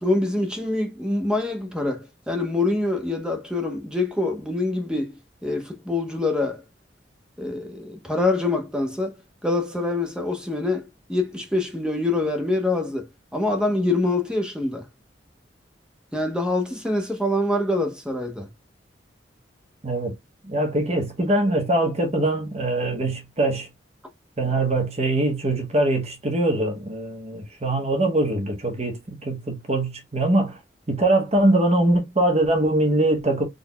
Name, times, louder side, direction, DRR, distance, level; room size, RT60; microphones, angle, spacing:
voice 1, 0.0-5.1 5.4-6.6 7.4-9.1 9.4-14.9 16.1-18.5, left 2 dB, 5° right, 0.9 m, -25 dB
voice 2, 19.8-20.1 20.4-23.7 24.4-30.6 30.9-33.5, right 1 dB, 35° right, 1.1 m, -22 dB
3.9 x 3.4 x 2.2 m
head